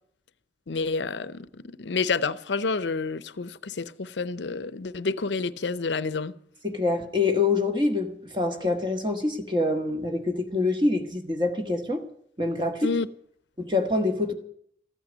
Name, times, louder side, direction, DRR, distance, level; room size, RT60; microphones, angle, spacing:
voice 1, 0.7-6.3 12.8-13.1, left 4 dB, 85° left, 0.7 m, -29 dB
voice 2, 6.6-12.0 12.4-12.9 13.6-14.3, left 3 dB, 25° right, 1.6 m, -25 dB
14.5 x 9.0 x 9.5 m
head